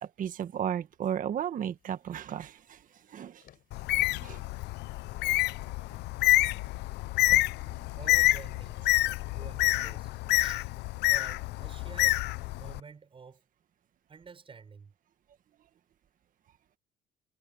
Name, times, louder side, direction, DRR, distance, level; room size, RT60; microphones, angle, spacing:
voice 1, 0.0-2.8 3.1-3.4 4.2-4.4, right 9 dB, 50° right, 1.7 m, -34 dB
sound 1, 1.8-8.9, left 11 dB, 65° left, 4.9 m, -53 dB
Bird, 3.7-12.8, left 18 dB, 80° left, 0.7 m, -27 dB
voice 2, 8.0-8.8 9.3-10.7 11.1-12.2 12.6-13.4 14.1-14.9, right 5 dB, 30° right, 7.2 m, -49 dB
cardioid pair, 110°, 17 cm